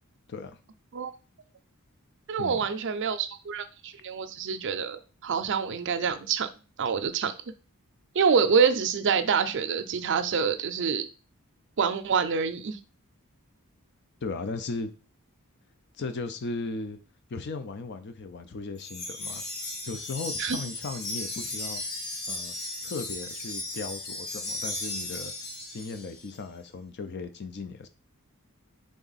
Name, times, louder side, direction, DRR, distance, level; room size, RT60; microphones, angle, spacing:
voice 1, 0.3-0.6 2.4-2.6 14.2-14.9 16.0-17.0 17.3-19.4 19.8-21.8 22.3-22.5 22.8-25.3 25.7-27.9, left 3 dB, 50° left, 0.5 m, -36 dB
voice 2, 2.3-6.5 6.8-7.4 8.1-11.1 11.8-12.8 20.4-20.6, right 6 dB, 55° right, 0.5 m, -26 dB
Wind chime, 18.8-26.3, left 2 dB, 80° left, 1.3 m, -36 dB
3.8 x 3.5 x 4.0 m
head